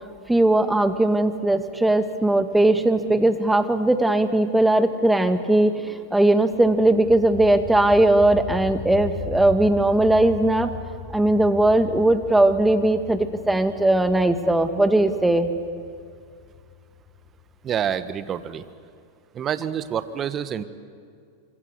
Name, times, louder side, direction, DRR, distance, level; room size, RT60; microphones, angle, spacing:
voice 1, 0.3-10.7 11.1-15.5, right 1 dB, 5° right, 8 dB, 2.0 m, -19 dB
sound 1, 6.5-18.1, left 6 dB, 35° left, 6.1 m, -38 dB
voice 2, 17.6-18.7 19.3-20.6, right 9 dB, 30° right, 13 dB, 1.5 m, -27 dB
25.5 x 25.0 x 8.3 m, 2.2 s
hypercardioid pair, 105°, 0 cm